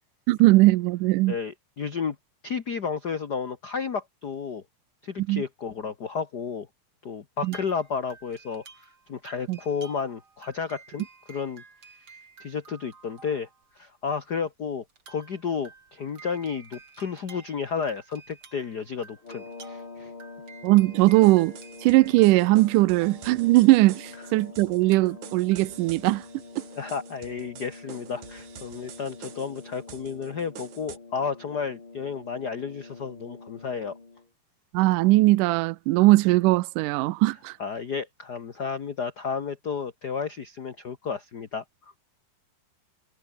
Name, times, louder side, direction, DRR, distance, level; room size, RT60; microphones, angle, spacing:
voice 1, 0.3-1.4 5.2-5.4 7.4-7.6 9.5-9.6 20.6-26.2 34.7-37.5, right 19 dB, 75° right, 2.0 m, -20 dB
voice 2, 1.3-2.2 2.4-4.6 5.0-6.7 7.0-11.6 12.4-13.5 13.7-20.1 26.8-34.0 37.6-41.6, left 6 dB, 55° left, 1.1 m, -32 dB
sound 1, 7.4-13.8 14.3-14.4 14.9-24.0 24.8-26.1, right 5 dB, 35° right, 3.9 m, -52 dB
sound 2, 19.2-34.3, left 3 dB, 35° left, 5.6 m, -45 dB
sound 3, 21.0-31.0, right 10 dB, 60° right, 3.0 m, -47 dB
omnidirectional pair, 4.1 m